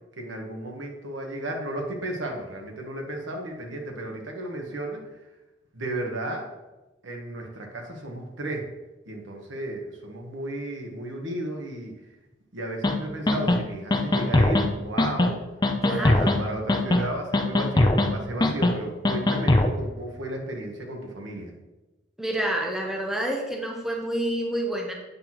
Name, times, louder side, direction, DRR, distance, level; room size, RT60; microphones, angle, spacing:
voice 1, 0.2-5.0 5.7-6.5 7.0-8.7 9.1-11.9 12.5-15.4 15.9-21.5, right 1 dB, 85° right, 2 dB, 1.3 m, -34 dB
sound 1, 12.8-12.9 13.3-13.6 13.9-14.7 15.0-15.3 15.6-16.4 16.7-17.1 17.3-18.1 18.4-18.7 19.0-19.7, left 2 dB, 20° left, 0.4 m, -21 dB
voice 2, 15.8-16.4 22.2-24.9, right 1 dB, ahead, -1 dB, 0.8 m, -28 dB
8.4 x 5.8 x 3.0 m, 1.1 s
head